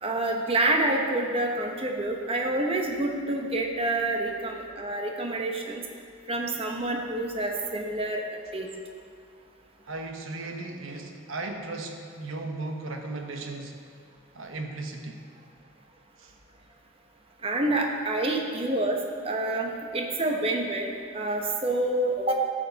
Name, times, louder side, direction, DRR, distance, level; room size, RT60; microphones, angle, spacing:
voice 1, 0.0-5.8 6.3-8.2 8.5-8.7 17.4-22.4, right 2 dB, 25° right, 2 dB, 0.9 m, -28 dB
voice 2, 9.9-13.8 14.3-15.3 16.2-16.3, right 2 dB, 75° right, 3 dB, 1.1 m, -36 dB
12.0 x 7.6 x 4.1 m, 2.3 s
head